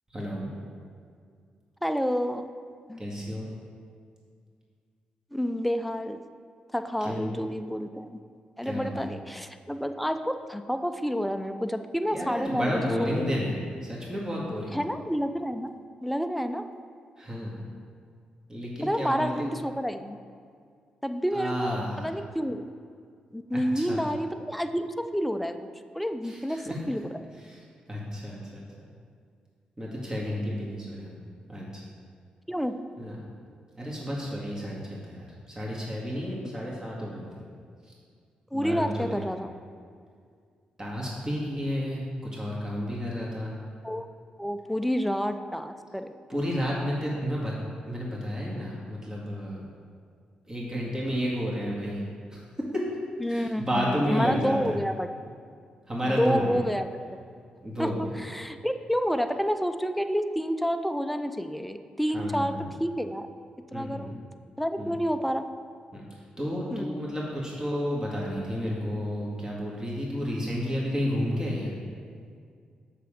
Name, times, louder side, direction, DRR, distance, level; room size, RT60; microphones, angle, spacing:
voice 1, 0.1-0.6 3.0-3.5 7.0-7.2 8.6-9.1 12.1-13.5 13.8-14.8 17.2-17.6 18.5-19.5 21.3-22.1 23.5-24.1 26.2-26.9 27.4-27.6 27.9-28.6 29.8-31.1 31.5-31.8 33.0-33.2 33.7-37.2 37.9-38.0 38.5-39.3 40.8-43.6 46.3-47.5 47.9-49.6 50.5-52.0 52.3-52.4 52.7-52.8 53.3-54.8 55.9-56.6 57.6-58.0 62.1-62.6 63.7-64.2 64.8-64.9 65.9-66.0 66.4-71.7, equal, 20° right, -5 dB, 2.0 m, -31 dB
voice 2, 1.8-2.5 2.9-3.0 5.3-6.3 6.7-8.1 8.6-13.3 14.7-15.7 16.0-16.7 18.8-20.2 21.0-22.6 23.3-25.7 25.9-27.2 32.5-32.8 38.5-39.5 43.8-44.1 44.4-46.1 53.2-55.1 56.0-56.9 57.8-63.3 63.7-64.2 64.6-65.5 66.7-67.0, equal, ahead, 8 dB, 0.5 m, -29 dB
6.8 x 5.9 x 5.1 m, 2.2 s
supercardioid pair, 50°, 3 cm